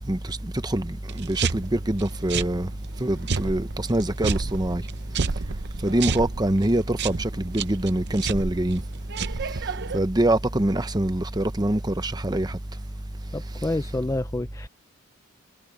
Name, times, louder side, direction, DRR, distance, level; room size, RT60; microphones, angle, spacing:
voice 1, 0.1-2.7 3.0-4.8 5.8-8.8 9.9-12.6, right 1 dB, 20° right, 0.8 m, -24 dB
sound 1, 1.1-10.0, right 5 dB, 50° right, 0.7 m, -31 dB
voice 2, 13.3-14.7, left 2 dB, 15° left, 0.4 m, -28 dB
head